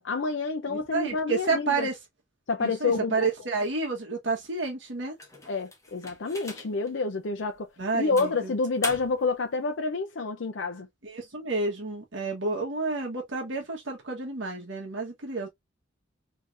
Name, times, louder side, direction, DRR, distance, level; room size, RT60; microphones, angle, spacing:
voice 1, 0.0-1.9 2.5-3.1 5.5-7.7 7.9-10.9, left 4 dB, 70° left, 0.6 m, -28 dB
voice 2, 0.7-2.0 2.6-5.2 7.8-8.5 11.0-15.5, right 3 dB, 70° right, 1.3 m, -30 dB
sound 1, 5.2-6.9 7.4-7.6 8.2-9.4, left 2 dB, 15° left, 1.1 m, -40 dB
3.4 x 3.2 x 2.6 m
head